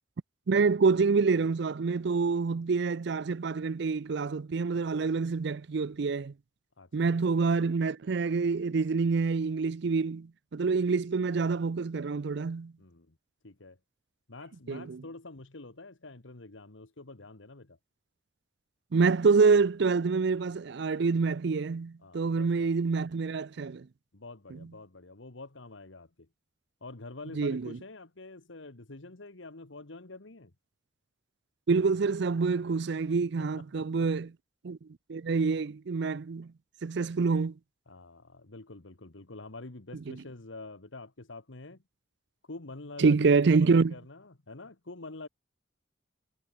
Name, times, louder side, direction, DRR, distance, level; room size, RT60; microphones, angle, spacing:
voice 1, 0.5-6.3 6.9-12.7 14.7-15.0 18.9-23.9 27.4-27.8 31.7-34.3 34.6-34.8 35.1-36.5 36.8-37.5 43.0-43.9, right 4 dB, 60° right, 0.5 m, -26 dB
voice 2, 6.8-7.1 12.8-13.2 13.4-13.8 14.3-17.8 22.0-22.7 24.1-26.3 26.8-30.5 33.4-34.1 35.4-35.5 37.9-41.8 42.4-43.3 43.6-45.3, left 2 dB, 85° left, 1.6 m, -47 dB
head